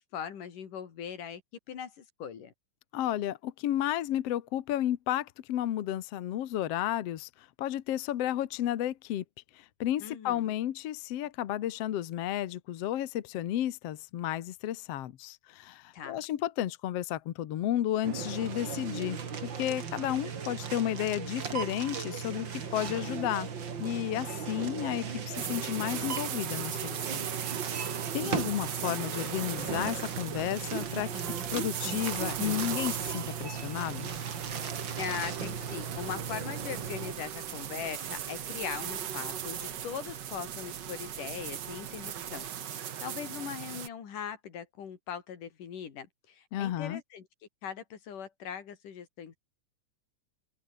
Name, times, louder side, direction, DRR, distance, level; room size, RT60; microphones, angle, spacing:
voice 1, 0.0-1.4 1.7-2.5 10.0-10.5 15.9-16.3 35.0-47.3 47.6-49.4, left 8 dB, 80° left, 4.3 m, -40 dB
voice 2, 2.9-9.2 9.5-23.5 23.8-27.3 27.6-34.1 46.5-47.0, left 12 dB, 60° left, 1.9 m, -32 dB
sound 1, 18.0-37.1, right 6 dB, 40° right, 2.4 m, -37 dB
sound 2, 25.3-43.9, right 9 dB, 60° right, 1.1 m, -38 dB
sound 3, 29.3-42.5, right 2 dB, 25° right, 4.6 m, -54 dB
open air
omnidirectional pair, 3.6 m